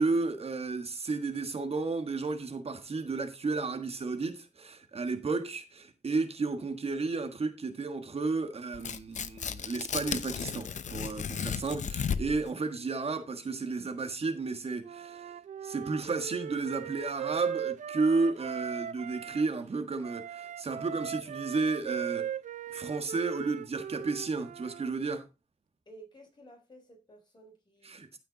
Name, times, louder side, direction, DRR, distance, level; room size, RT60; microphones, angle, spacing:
voice 1, 0.0-15.3 15.6-22.3 22.7-25.3 27.8-28.2, right 3 dB, 50° right, 1.5 m, -32 dB
Tearing, 8.7-12.5, left 7 dB, 75° left, 0.8 m, -34 dB
Wind instrument woodwind instrument, 14.8-19.5 20.0-24.9, right 9 dB, 90° right, 0.5 m, -39 dB
voice 2, 25.9-27.9, right 1 dB, 35° left, 5.9 m, -54 dB
14.5 x 5.7 x 4.0 m
cardioid pair, 85°, 13 cm